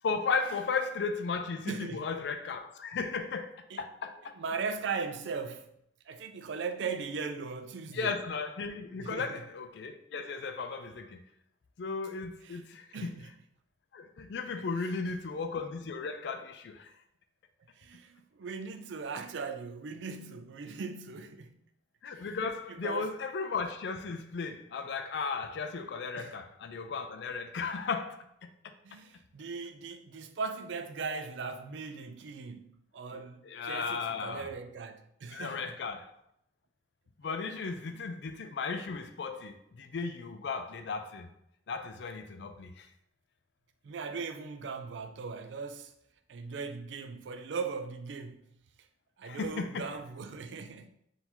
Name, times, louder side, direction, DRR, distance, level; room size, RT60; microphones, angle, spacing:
voice 1, 0.0-4.3 7.9-11.2 11.8-13.1 13.9-16.9 22.0-28.2 33.1-34.5 35.3-36.1 37.2-41.3 41.7-42.9 49.2-49.9, left 4 dB, 65° left, 0.4 m, -35 dB
voice 2, 1.7-2.2 3.7-3.8 4.4-5.7 6.1-8.2 9.0-9.4 12.4-12.6 12.9-13.3 14.6-15.2 17.8-21.6 22.1-22.3 22.7-23.1 26.2-26.4 28.8-35.8 37.9-38.0 43.8-45.9 46.3-48.4 49.2-50.9, right 5 dB, 80° right, 0.4 m, -39 dB
4.0 x 2.7 x 4.3 m
head